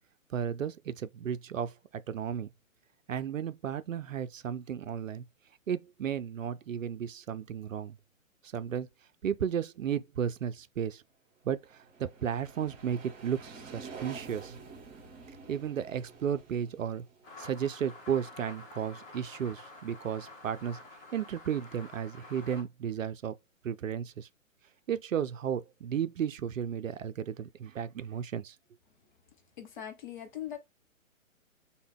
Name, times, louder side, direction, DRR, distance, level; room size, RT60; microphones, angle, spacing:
voice 1, 0.3-2.5 3.1-5.2 5.7-8.0 8.4-8.9 9.2-11.0 11.4-14.6 15.5-17.0 17.4-20.8 21.1-23.4 23.6-24.3 24.9-28.6, right 8 dB, 70° right, 0.5 m, -34 dB
sound 1, 11.6-18.2, right 4 dB, 30° right, 1.8 m, -49 dB
sound 2, 17.2-22.6, left 2 dB, 15° left, 1.1 m, -49 dB
voice 2, 29.6-30.6, left 10 dB, 35° left, 0.8 m, -40 dB
3.4 x 2.2 x 3.5 m
figure-of-eight pair, 125°, 41 cm